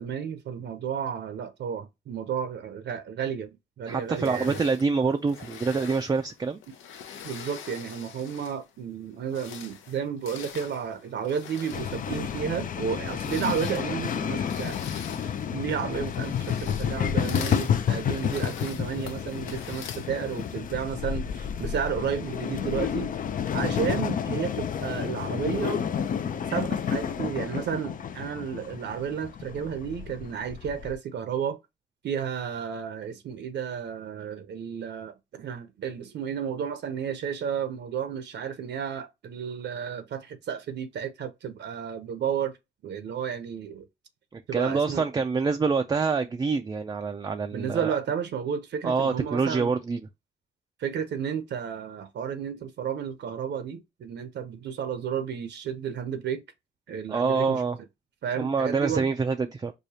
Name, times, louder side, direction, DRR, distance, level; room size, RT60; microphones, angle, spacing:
voice 1, 0.0-4.6 7.2-14.8 15.5-23.1 23.5-25.8 26.5-31.6 32.0-42.6 42.8-43.9 44.5-45.0 47.5-49.7 50.8-56.4 56.9-57.6 58.2-59.1, right 7 dB, 60° right, 0.7 m, -32 dB
voice 2, 3.9-6.6 44.3-48.0 48.8-50.0 57.1-57.8 58.4-59.7, right 4 dB, 20° right, 0.4 m, -26 dB
sound 1, 4.1-8.7 9.2-20.7, left 8 dB, 85° left, 0.7 m, -44 dB
sound 2, 11.7-30.9, left 8 dB, 45° left, 0.5 m, -30 dB
4.8 x 2.2 x 2.7 m
cardioid pair, 90°, 20 cm